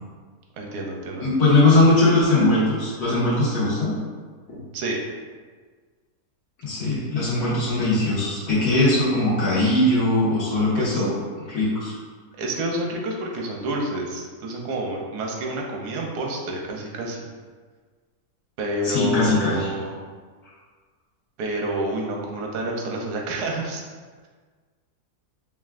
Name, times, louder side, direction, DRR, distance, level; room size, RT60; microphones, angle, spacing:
voice 1, 0.6-1.3 4.7-5.1 10.8-11.0 12.4-17.3 18.6-19.9 21.4-23.8, right 1 dB, 90° right, 0 dB, 1.2 m, -29 dB
voice 2, 1.2-3.9 4.5-4.6 6.6-11.1 11.5-11.9 18.8-19.7, left 2 dB, 75° left, -10 dB, 2.0 m, -20 dB
5.7 x 2.4 x 2.4 m, 1.5 s
omnidirectional pair, 1.7 m